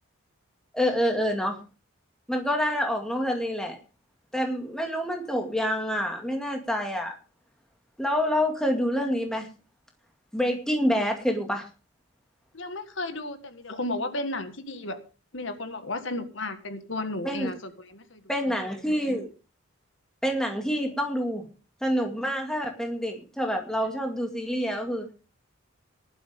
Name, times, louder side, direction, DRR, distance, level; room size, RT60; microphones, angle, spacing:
voice 1, 0.7-1.6 2.3-3.8 4.3-7.1 8.0-9.5 10.3-11.7 17.2-17.5 18.3-19.3 20.2-21.5 21.8-25.0, equal, 5° left, 3 dB, 2.1 m, -27 dB
voice 2, 12.5-15.0 15.3-18.2, left 2 dB, 65° left, 9 dB, 1.7 m, -33 dB
18.5 x 11.5 x 3.6 m, 0.34 s
head